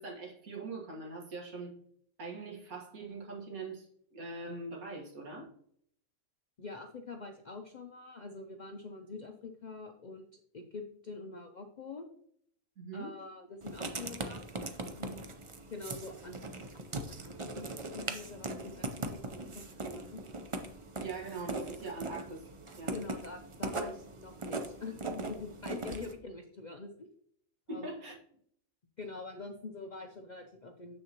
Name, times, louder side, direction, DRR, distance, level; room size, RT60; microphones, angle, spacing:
voice 1, 0.0-1.7 2.2-5.5 12.8-13.1 21.0-22.4 22.8-22.9 27.7-28.2, right 3 dB, 90° right, -1 dB, 2.0 m, -42 dB
voice 2, 6.6-12.1 12.9-14.4 15.0-15.3 15.7-16.5 16.7-20.2 22.9-27.1 27.7-27.9 29.0-31.0, left 3 dB, 60° left, 5 dB, 0.4 m, -45 dB
Writing, 13.6-26.1, right 2 dB, 40° right, 0.4 m, -40 dB
7.6 x 6.5 x 2.9 m, 0.66 s
omnidirectional pair, 1.5 m